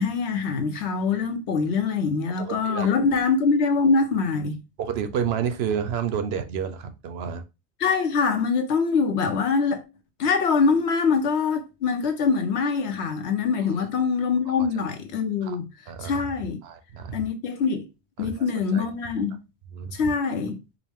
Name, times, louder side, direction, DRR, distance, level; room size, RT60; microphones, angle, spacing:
voice 1, 0.0-4.6 7.8-9.8 10.2-15.7 16.0-16.6 17.1-17.9 18.2-19.4 19.9-20.5, left 5 dB, 80° left, 1.0 m, -24 dB
voice 2, 2.4-2.9 4.8-7.4 13.6-13.7 14.5-14.6 15.4-15.6 15.9-16.2 16.6-17.2 18.2-18.9 19.7-19.9, right 7 dB, 70° right, 0.8 m, -30 dB
4.9 x 2.1 x 3.4 m
omnidirectional pair, 1.1 m